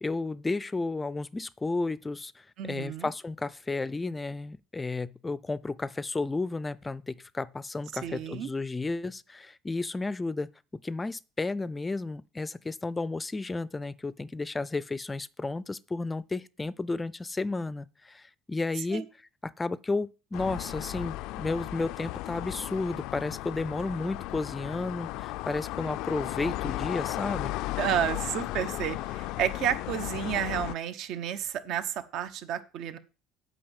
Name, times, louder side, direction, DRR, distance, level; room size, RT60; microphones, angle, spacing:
voice 1, 0.0-10.5 10.8-19.1 19.4-27.5, left 3 dB, 15° left, 0.5 m, -32 dB
voice 2, 2.6-3.1 8.0-8.5 18.9-19.0 27.8-33.0, right 10 dB, 65° right, 1.1 m, -31 dB
sound 1, 20.3-30.7, left 17 dB, 75° left, 0.4 m, -35 dB
8.7 x 5.5 x 7.3 m
cardioid pair, 125°, 0 cm